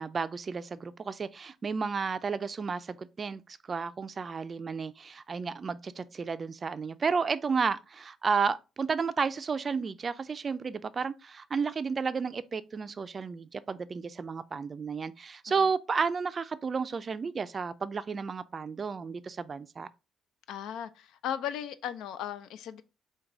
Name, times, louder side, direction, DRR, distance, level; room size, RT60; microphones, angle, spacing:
voice 1, 0.0-19.9, right 5 dB, 40° right, 0.3 m, -32 dB
voice 2, 20.5-22.8, left 10 dB, 85° left, 0.4 m, -36 dB
4.6 x 2.2 x 3.7 m
cardioid pair, 90°, 0 cm